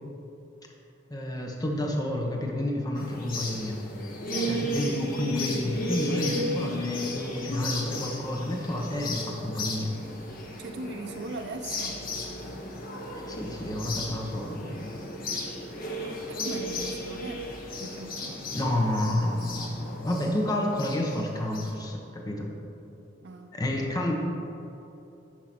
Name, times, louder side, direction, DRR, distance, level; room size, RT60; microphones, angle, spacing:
voice 1, 1.1-3.8 4.4-9.9 13.3-14.9 18.5-22.5 23.5-24.2, left 1 dB, 20° left, 0 dB, 0.9 m, -30 dB
sound 1, 3.0-21.7, left 1 dB, 50° left, 1.3 m, -35 dB
voice 2, 4.3-4.6 10.6-12.0 16.3-17.5 17.8-18.4 23.2-23.6, right 2 dB, 65° right, 5 dB, 0.7 m, -39 dB
10.5 x 4.8 x 6.0 m, 2.8 s
head